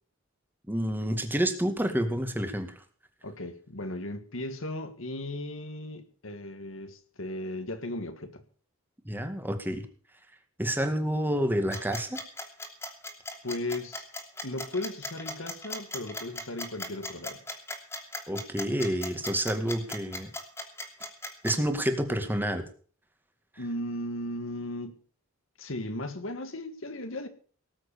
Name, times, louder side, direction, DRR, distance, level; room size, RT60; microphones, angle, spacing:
voice 1, 0.7-2.8 9.0-9.8 10.6-12.2 18.3-20.3 21.4-22.7, equal, 10° right, 2.0 m, -29 dB
voice 2, 3.2-8.4 13.4-14.1 14.4-17.4 23.6-25.0 25.6-27.3, left 1 dB, 70° left, 1.8 m, -36 dB
sound 1, 11.7-21.7, left 1 dB, 10° left, 2.8 m, -37 dB
18.5 x 7.8 x 6.9 m
head